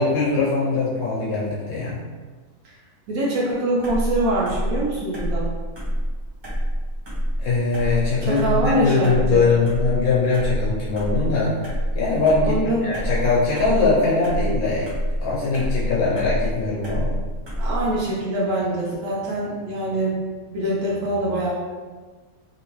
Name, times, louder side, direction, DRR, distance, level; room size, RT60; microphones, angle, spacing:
voice 1, 0.0-2.0 7.4-11.5 11.9-14.9 15.2-17.1, left 3 dB, 75° left, -6 dB, 1.1 m, -21 dB
voice 2, 3.1-5.5 8.2-9.5 12.4-12.9 17.6-20.2 20.5-21.5, right 1 dB, 75° right, -6 dB, 1.2 m, -24 dB
sound 1, 3.8-18.0, equal, 30° right, 0.5 m, -27 dB
2.9 x 2.7 x 3.0 m, 1.4 s
omnidirectional pair, 1.6 m